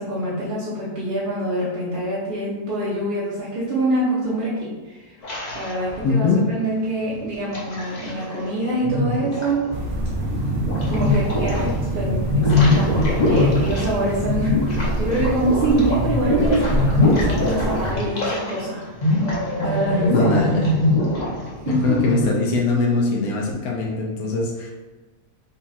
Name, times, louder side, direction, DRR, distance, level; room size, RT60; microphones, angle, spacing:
voice 1, 0.0-9.7 10.5-18.8 19.6-20.4 21.6-22.0, right 1 dB, 40° right, -9 dB, 1.0 m, -25 dB
sound 1, 5.2-6.3 7.1-8.4 8.8-11.7 12.0-18.6 18.9-22.3, left 2 dB, 35° left, 0.9 m, -22 dB
voice 2, 6.0-6.4 20.1-20.7 21.8-24.7, left 4 dB, 80° left, -1 dB, 1.2 m, -21 dB
sound 2, 9.7-17.9, right 2 dB, 60° right, 0.6 m, -26 dB
5.5 x 2.4 x 4.1 m, 1.3 s
omnidirectional pair, 1.5 m